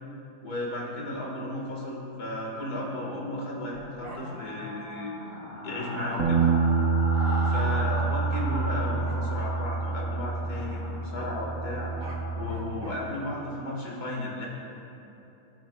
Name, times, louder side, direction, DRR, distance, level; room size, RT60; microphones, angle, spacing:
voice 1, 0.4-5.1 5.6-6.4 7.4-11.9 12.3-14.5, left 1 dB, 80° left, -3 dB, 2.4 m, -34 dB
sound 1, 3.8-12.6, left 1 dB, 30° left, 2.3 m, -38 dB
Bark, 4.0-4.2 6.1-6.2 7.2-7.3 7.7-7.8 9.1-9.3 11.8-12.9, right 2 dB, 30° right, 0.9 m, -44 dB
Bass guitar, 6.2-12.4, right 4 dB, 55° right, 1.2 m, -27 dB
16.0 x 9.0 x 2.4 m, 2.9 s
omnidirectional pair, 1.7 m